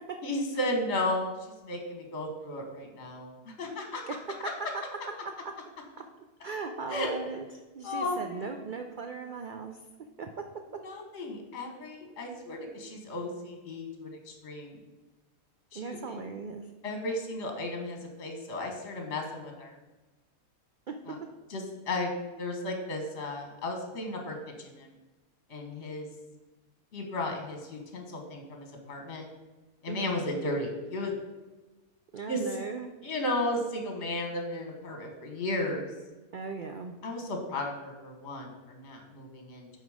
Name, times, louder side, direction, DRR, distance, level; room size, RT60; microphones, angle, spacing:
voice 1, 0.2-4.0 6.9-7.1 7.8-8.6 10.8-14.8 15.7-16.2 16.8-19.7 21.1-21.2 21.5-22.1 22.4-24.9 25.5-26.1 26.9-29.2 29.8-31.1 32.3-32.4 33.0-35.9 37.0-39.7, left 1 dB, 50° left, 3 dB, 1.5 m, -34 dB
voice 2, 6.4-7.5 7.7-9.8 10.2-10.3 15.7-16.7 20.9-21.2 29.9-30.2 32.1-32.9 36.3-36.9, right 4 dB, 65° right, 5 dB, 0.5 m, -38 dB
9.1 x 4.2 x 4.9 m, 1.1 s
omnidirectional pair, 1.5 m